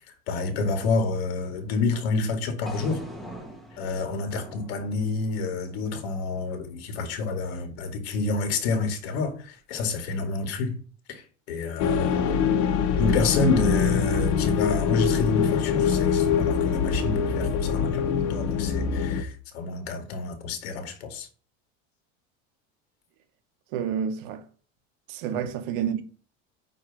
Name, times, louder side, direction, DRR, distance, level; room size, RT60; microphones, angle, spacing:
voice 1, 0.0-3.0 3.7-10.8 11.1-12.4 13.0-21.3 25.3-25.4, left 3 dB, 85° left, 2.2 m, -29 dB
sound 1, 2.7-6.8, right 1 dB, ahead, 0.9 m, -43 dB
sound 2, 11.8-19.2, left 6 dB, 55° left, 1.0 m, -24 dB
voice 2, 23.7-24.4 25.1-26.0, right 8 dB, 55° right, 1.0 m, -29 dB
9.2 x 3.2 x 5.8 m
cardioid pair, 180°, 31 cm